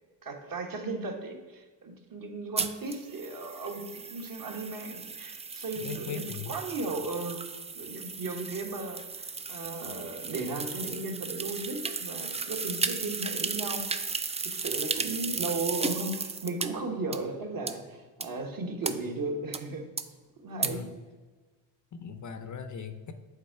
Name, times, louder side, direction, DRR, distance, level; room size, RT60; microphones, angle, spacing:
voice 1, 0.2-7.4 7.7-13.9 14.4-19.8 20.4-20.8, right 3 dB, 45° right, 3 dB, 1.3 m, -36 dB
sound 1, 2.6-16.7 17.1-17.2 17.7-17.8 18.2-18.3 18.8-18.9 19.5-19.6 20.0-20.1 20.6-20.7, right 4 dB, 15° right, 0.3 m, -35 dB
voice 2, 5.8-6.6 20.6-20.9 21.9-23.1, left 6 dB, 40° left, 9 dB, 0.6 m, -39 dB
7.4 x 3.6 x 4.6 m, 1.3 s
cardioid pair, 85°, 45 cm